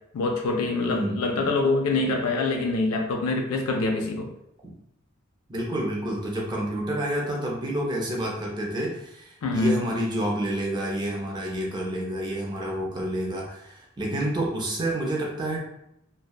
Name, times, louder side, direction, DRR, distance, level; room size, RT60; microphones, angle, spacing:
voice 1, 0.1-4.3 9.4-9.8, left 3 dB, 80° left, 2 dB, 0.4 m, -25 dB
voice 2, 0.9-1.5 5.5-15.6, right 1 dB, 20° right, -2 dB, 0.5 m, -29 dB
2.7 x 2.1 x 2.3 m, 0.79 s
head